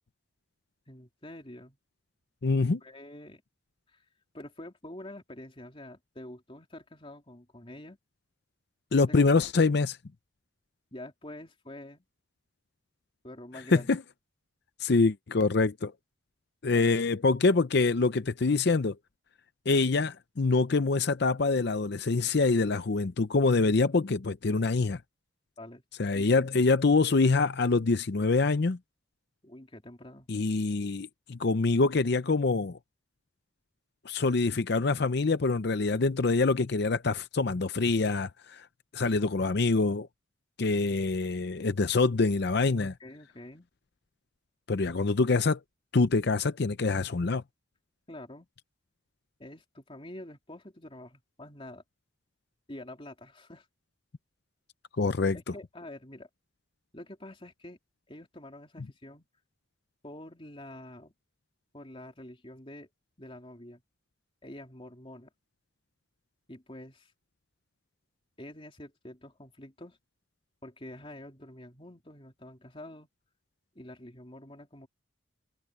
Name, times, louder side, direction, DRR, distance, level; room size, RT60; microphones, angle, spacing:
voice 1, 0.9-1.8 2.8-3.4 3.9-4.0 4.3-8.0 9.0-9.3 10.9-12.0 13.2-13.9 16.7-17.0 25.6-25.8 26.1-26.6 29.4-30.3 42.8-43.7 48.1-48.5 49.4-51.8 52.7-53.7 55.3-56.3 56.9-57.8 58.1-59.3 60.0-61.1 61.7-62.9 63.2-63.8 64.4-65.3 66.5-67.1 68.4-70.0 70.6-73.1 73.7-74.9, left 1 dB, 30° left, 3.4 m, -46 dB
voice 2, 2.4-2.8 8.9-10.0 13.7-14.0 14.8-15.9 16.6-19.0 19.7-25.0 26.0-28.8 30.3-32.8 34.1-38.7 38.9-40.1 40.6-42.9 44.7-45.6 45.9-47.4 55.0-55.4, left 3 dB, 55° left, 0.6 m, -25 dB
head